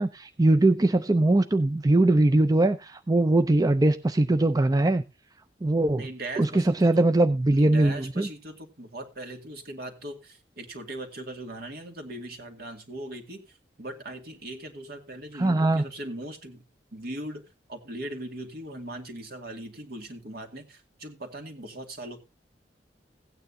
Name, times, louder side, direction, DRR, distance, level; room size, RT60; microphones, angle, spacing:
voice 1, 0.0-5.0 5.6-6.1 6.4-8.3 15.3-15.8, right 2 dB, 20° right, 0.5 m, -21 dB
voice 2, 6.0-7.0 7.5-16.6 16.9-17.4 17.7-22.2, right 1 dB, 60° right, 2.3 m, -39 dB
16.5 x 9.3 x 2.7 m
head